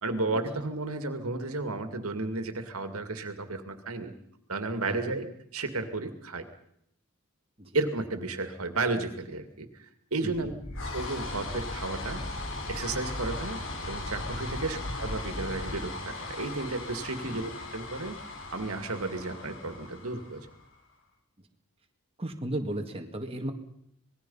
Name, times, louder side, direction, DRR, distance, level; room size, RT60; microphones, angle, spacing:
voice 1, 0.0-4.1 4.5-5.3 5.5-6.4 7.7-10.5 10.9-12.2 12.7-13.6 13.9-18.2 18.5-20.4, right 3 dB, 70° right, 8 dB, 2.3 m, -33 dB
voice 2, 4.9-5.2 7.6-7.8 10.2-10.5 14.7-14.8 17.2-17.4 22.2-23.5, right 1 dB, 25° right, 3 dB, 2.1 m, -36 dB
sound 1, 10.3-20.7, left 2 dB, 60° left, 4.8 m, -37 dB
26.5 x 20.0 x 5.6 m, 0.74 s
head